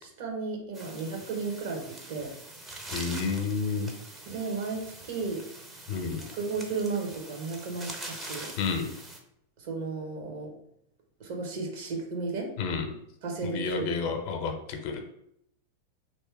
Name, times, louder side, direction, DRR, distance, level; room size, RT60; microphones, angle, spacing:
voice 1, 0.0-2.3 4.3-5.5 6.4-8.5 9.6-10.5 11.2-12.5 13.2-13.9, right 4 dB, 50° right, 1 dB, 1.2 m, -34 dB
sound 1, 0.7-9.2, right 2 dB, 15° right, 0.7 m, -43 dB
voice 2, 2.9-3.9 5.9-6.2 8.6-8.9 12.6-12.8 13.4-15.1, left 4 dB, 45° left, 4 dB, 0.8 m, -30 dB
3.3 x 3.0 x 4.7 m, 0.76 s
figure-of-eight pair, 90°, 0 cm